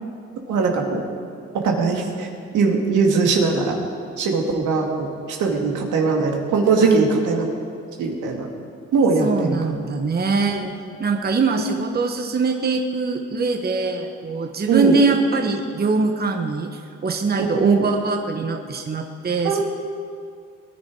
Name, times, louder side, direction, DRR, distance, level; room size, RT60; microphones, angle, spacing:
voice 1, 0.5-1.0 1.5-2.3 2.5-3.8 4.2-7.5 8.0-8.5 8.9-9.8 10.3-10.7 14.7-14.9 17.4-17.8 19.4-19.6, right 4 dB, 80° right, 1 dB, 2.3 m, -20 dB
voice 2, 9.2-10.7 11.0-19.6, right 4 dB, 30° right, 4 dB, 1.2 m, -22 dB
20.5 x 10.5 x 4.8 m, 2.3 s
cardioid pair, 90°, 30 cm